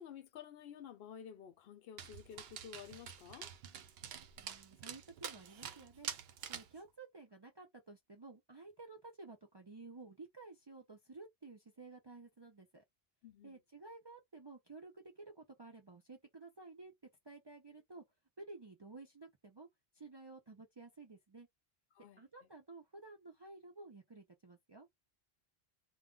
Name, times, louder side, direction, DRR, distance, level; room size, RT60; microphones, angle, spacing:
voice 1, 0.0-3.5 13.2-13.6 21.9-22.2, left 8 dB, 70° left, 0.8 m, -52 dB
Dog, 2.0-6.8, right 8 dB, 75° right, 0.8 m, -47 dB
voice 2, 4.4-6.1 6.5-12.8 13.4-16.9 17.2-18.0 18.4-19.7 19.9-21.5 22.2-24.9, right 3 dB, 35° right, 0.4 m, -53 dB
2.3 x 2.1 x 3.7 m
omnidirectional pair, 1.1 m